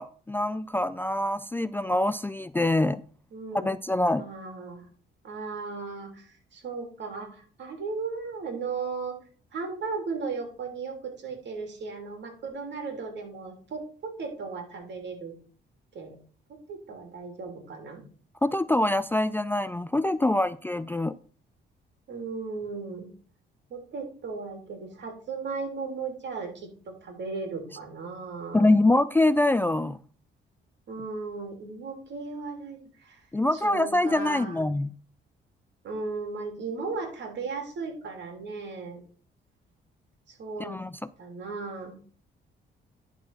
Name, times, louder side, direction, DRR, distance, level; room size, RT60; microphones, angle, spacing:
voice 1, 0.0-3.0 3.5-4.3 18.4-21.2 28.5-30.0 33.3-34.9 40.6-40.9, left 2 dB, 10° left, 0.3 m, -24 dB
voice 2, 3.3-3.7 4.2-4.9 5.2-9.2 9.5-15.3 15.9-16.2 16.5-18.0 22.1-23.1 23.7-28.7 30.9-33.3 33.5-34.6 35.8-39.0 40.3-40.8 41.2-42.0, right 4 dB, 65° right, 3.2 m, -36 dB
11.0 x 4.3 x 5.8 m
cardioid pair, 90°, 20 cm